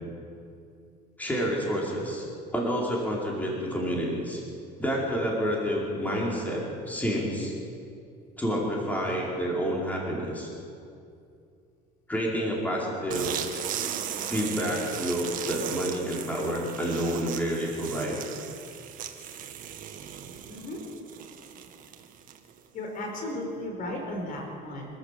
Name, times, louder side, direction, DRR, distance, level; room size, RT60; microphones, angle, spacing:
voice 1, 1.2-2.2 2.5-4.4 4.8-7.5 8.4-10.5 12.1-13.3 14.2-18.2, equal, 10° left, -3 dB, 4.9 m, -29 dB
sound 1, 13.1-22.6, right 9 dB, 50° right, 1.9 m, -37 dB
voice 2, 20.5-20.8 22.7-24.9, left 1 dB, 55° left, 1 dB, 5.0 m, -35 dB
26.0 x 13.0 x 8.5 m, 2.5 s
cardioid pair, 130°, 18 cm